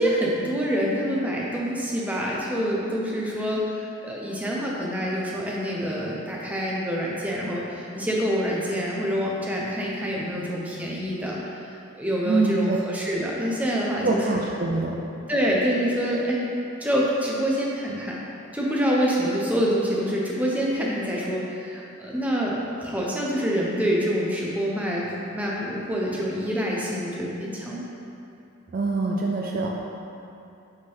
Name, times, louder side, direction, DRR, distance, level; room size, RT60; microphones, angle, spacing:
voice 1, 0.0-11.7 12.0-14.4 15.3-16.5 16.8-18.2 18.5-25.1 25.3-27.8, equal, 5° right, -4 dB, 0.6 m, -26 dB
voice 2, 12.2-12.8 14.0-15.0 28.7-29.7, right 3 dB, 40° right, -1 dB, 0.4 m, -24 dB
5.3 x 3.7 x 5.4 m, 2.7 s
head